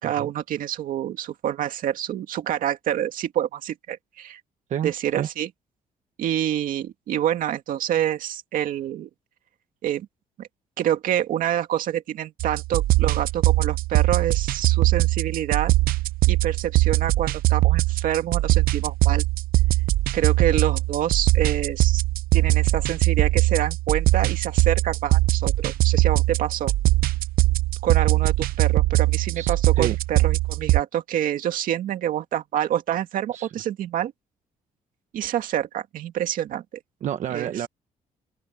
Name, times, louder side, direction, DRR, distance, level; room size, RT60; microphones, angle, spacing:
voice 1, 0.0-4.4 4.8-5.5 6.2-9.1 9.8-10.1 10.4-10.5 10.8-15.7 16.3-19.2 20.1-22.0 22.3-26.7 27.8-34.1 35.1-36.6 37.3-37.5, right 11 dB, 70° right, 2.2 m, -27 dB
voice 2, 4.7-5.3 29.3-30.0 33.3-33.5 37.0-37.7, right 10 dB, 55° right, 1.1 m, -30 dB
sound 1, 12.4-30.8, right 18 dB, 90° right, 0.6 m, -21 dB
open air
cardioid pair, 175°, 15 cm